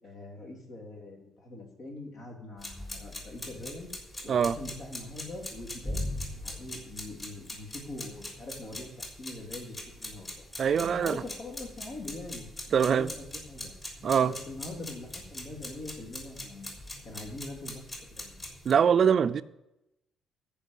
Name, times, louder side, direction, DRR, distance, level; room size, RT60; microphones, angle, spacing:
voice 1, 0.0-3.9 4.2-6.0 6.4-10.4 10.9-13.7 14.1-16.7 17.0-17.8 18.1-18.4, left 2 dB, 65° left, 3.4 m, -43 dB
sound 1, 2.6-18.7, left 1 dB, 25° left, 3.5 m, -41 dB
voice 2, 10.6-11.2 12.7-13.1 14.0-14.3 18.7-19.4, right 7 dB, 45° right, 0.4 m, -23 dB
14.0 x 5.4 x 8.2 m
cardioid pair, 125°, 0 cm